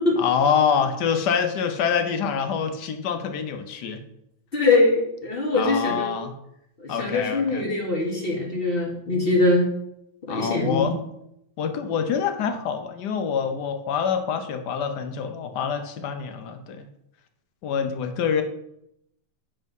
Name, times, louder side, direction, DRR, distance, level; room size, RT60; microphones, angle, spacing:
voice 1, 0.2-4.0 5.5-6.4 6.9-7.7 10.3-11.0 11.6-16.9 17.6-18.4, left 7 dB, 65° left, 7 dB, 1.0 m, -26 dB
voice 2, 4.5-6.1 6.8-9.7 10.3-10.9, left 2 dB, 35° left, -2 dB, 1.1 m, -22 dB
7.8 x 3.6 x 5.3 m, 0.80 s
omnidirectional pair, 2.4 m